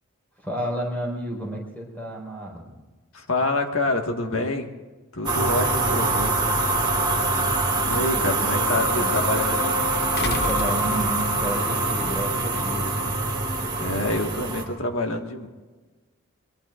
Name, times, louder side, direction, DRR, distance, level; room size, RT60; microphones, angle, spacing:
voice 1, 0.4-2.7 7.9-9.1 10.2-13.0, right 1 dB, 10° left, -2 dB, 4.7 m, -32 dB
voice 2, 3.1-4.7 5.1-6.4 7.8-9.9 13.8-15.5, left 2 dB, 70° left, 4 dB, 1.7 m, -27 dB
sound 1, 5.2-14.6, right 2 dB, 20° right, 2.6 m, -24 dB
sound 2, 10.2-11.5 12.8-12.9, left 3 dB, 50° left, 0.9 m, -32 dB
23.0 x 22.0 x 2.5 m, 1.3 s
head